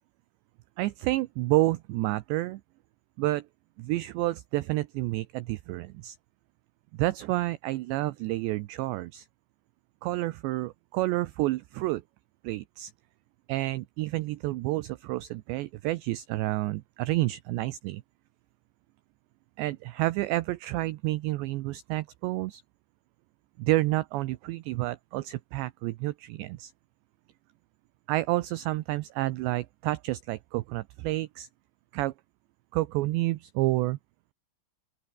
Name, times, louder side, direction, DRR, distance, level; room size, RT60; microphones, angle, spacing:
voice 1, 0.8-2.6 3.2-3.5 3.8-6.2 6.9-9.3 10.0-12.0 12.4-12.9 13.5-18.0 19.6-22.6 23.6-26.7 28.1-31.5 31.9-32.1 32.7-34.0, right 18 dB, 80° right, 2.5 m, -29 dB
open air
omnidirectional pair, 6.0 m